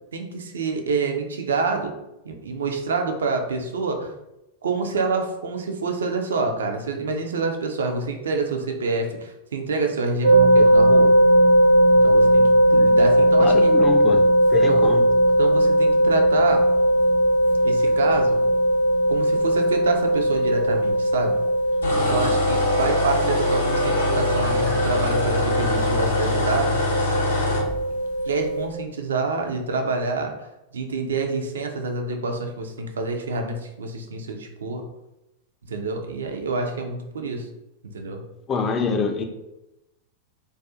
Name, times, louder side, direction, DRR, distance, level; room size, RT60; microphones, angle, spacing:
voice 1, 0.1-1.9 2.2-4.1 4.6-11.1 11.9-13.7 14.6-14.9 15.4-16.7 17.6-18.5 19.1-21.4 22.0-26.8 28.2-30.5 30.7-34.9 35.7-37.5 37.9-38.2, right 3 dB, 65° right, 4 dB, 0.4 m, -27 dB
sound 1, 10.2-28.6, right 1 dB, 85° right, 0.9 m, -19 dB
voice 2, 13.4-15.0 38.5-39.2, left 5 dB, 25° left, 5 dB, 0.4 m, -25 dB
sound 2, 21.8-27.7, left 2 dB, 70° left, 0.6 m, -24 dB
2.3 x 2.3 x 2.5 m, 0.91 s
figure-of-eight pair, 90°, 0 cm